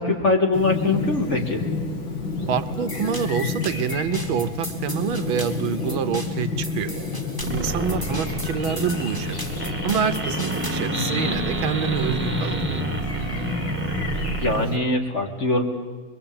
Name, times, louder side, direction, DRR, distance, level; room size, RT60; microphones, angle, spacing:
voice 1, 0.0-1.6 7.9-8.0 14.4-15.7, left 2 dB, 35° left, 2 dB, 2.6 m, -22 dB
Chirp tweet, 0.5-14.8, left 4 dB, 75° left, 2.9 m, -30 dB
voice 2, 2.5-6.9 7.5-12.6, right 7 dB, 80° right, 10 dB, 1.8 m, -27 dB
sound 1, 2.9-10.9, right 1 dB, 10° left, 2.2 m, -36 dB
sound 2, 7.4-14.6, right 3 dB, 5° right, 1.5 m, -29 dB
23.5 x 23.0 x 8.8 m, 1.3 s
omnidirectional pair, 2.2 m